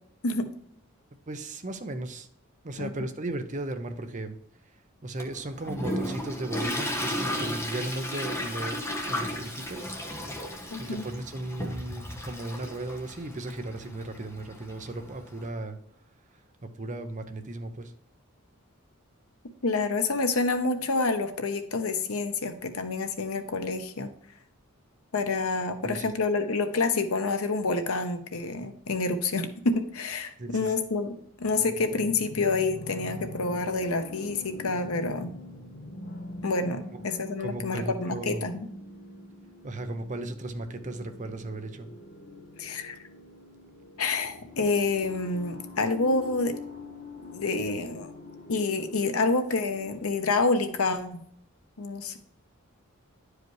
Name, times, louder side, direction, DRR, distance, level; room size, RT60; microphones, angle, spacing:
voice 1, 1.3-2.3 2.6-4.4 4.6-9.9 10.3-10.4 10.8-15.8 16.6-17.9 25.8-26.1 30.4-30.7 36.9-37.0 37.4-38.5 39.6-41.9, right 2 dB, 35° right, 7 dB, 0.7 m, -36 dB
Toilet flush, 5.2-15.4, equal, 10° left, 1.1 m, -34 dB
voice 2, 10.7-11.0 19.6-24.1 25.1-35.3 36.4-38.7 42.6-43.0 44.0-46.5 47.3-48.1 48.5-51.2 51.8-52.2, left 3 dB, 85° left, 7 dB, 0.9 m, -28 dB
sound 1, 31.3-50.1, left 2 dB, 40° left, 0.8 m, -44 dB
10.5 x 4.9 x 3.1 m, 0.68 s
head